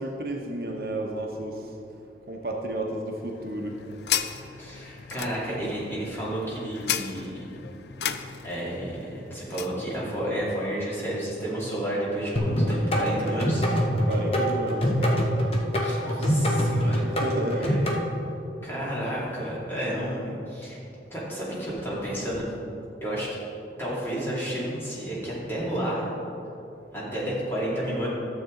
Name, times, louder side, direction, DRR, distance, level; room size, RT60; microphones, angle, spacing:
voice 1, 0.0-1.6 2.3-3.7 14.1-15.3 17.0-17.7, right 1 dB, 55° right, 0 dB, 0.9 m, -31 dB
sound 1, 3.2-9.8, left 9 dB, 70° left, 0.4 m, -35 dB
voice 2, 4.6-7.6 8.4-13.7 15.8-17.1 17.6-17.8 18.6-20.8 21.1-22.4 23.0-23.4 23.8-26.1 26.9-28.1, right 1 dB, 15° left, -8 dB, 2.4 m, -31 dB
sound 2, 12.4-18.0, equal, 35° left, 1.0 m, -24 dB
12.0 x 7.3 x 3.8 m, 2.9 s
head